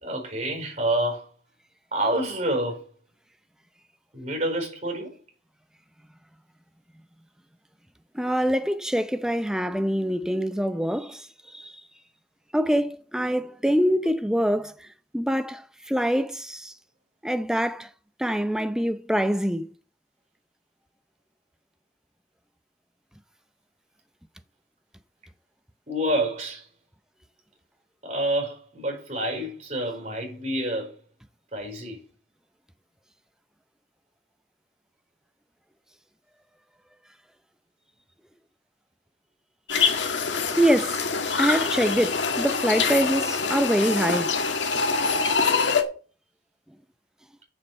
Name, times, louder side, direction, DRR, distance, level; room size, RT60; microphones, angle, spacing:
voice 1, 0.0-1.3 1.9-2.8 4.1-5.1 25.9-26.7 28.0-30.9 31.5-32.0, right 1 dB, 35° right, 4.8 m, -28 dB
voice 2, 8.1-11.3 11.5-11.7 12.5-14.7 15.1-16.7 17.2-17.9 18.2-19.7 40.6-41.0 41.4-44.3, equal, 5° right, 0.6 m, -24 dB
sound 1, 39.7-45.8, left 5 dB, 80° left, 1.9 m, -25 dB
7.5 x 7.0 x 7.8 m
head